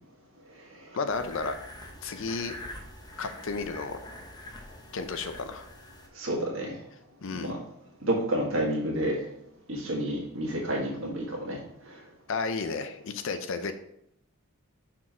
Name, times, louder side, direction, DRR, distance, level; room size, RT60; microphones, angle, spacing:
voice 1, 1.0-1.5 2.0-2.5 3.2-4.0 4.9-5.7 7.2-7.5 12.3-13.7, left 4 dB, 60° left, 9 dB, 0.6 m, -32 dB
sound 1, 1.1-6.1, left 1 dB, 20° left, 0.8 m, -45 dB
voice 2, 6.1-6.8 7.3-7.6 8.0-9.2 9.7-12.0, right 1 dB, 60° right, -2 dB, 1.9 m, -30 dB
6.1 x 4.5 x 4.4 m, 0.75 s
head